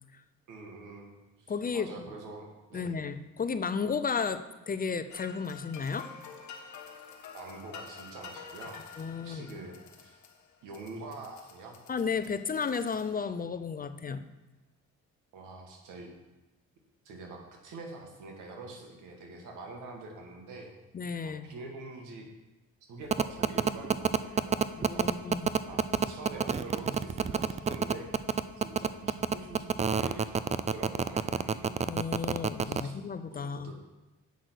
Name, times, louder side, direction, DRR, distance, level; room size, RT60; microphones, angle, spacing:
voice 1, 0.5-3.0 7.3-8.8 9.2-10.2 10.6-11.8 15.3-16.1 17.1-20.7 21.2-22.3 22.9-25.1 25.7-28.1 28.6-31.8 32.6-32.9 33.3-33.7, right 3 dB, 90° right, 1 dB, 1.9 m, -45 dB
voice 2, 1.5-1.9 2.7-6.1 9.0-9.5 11.9-14.3 20.9-21.5 24.8-25.5 31.8-33.7, left 5 dB, 30° left, 11 dB, 0.5 m, -33 dB
sound 1, 5.1-13.5, left 6 dB, 70° left, 1.3 m, -49 dB
sound 2, 23.1-32.8, right 6 dB, 25° right, 0.4 m, -27 dB
8.2 x 6.0 x 6.3 m, 1.1 s
cardioid pair, 90°, 30 cm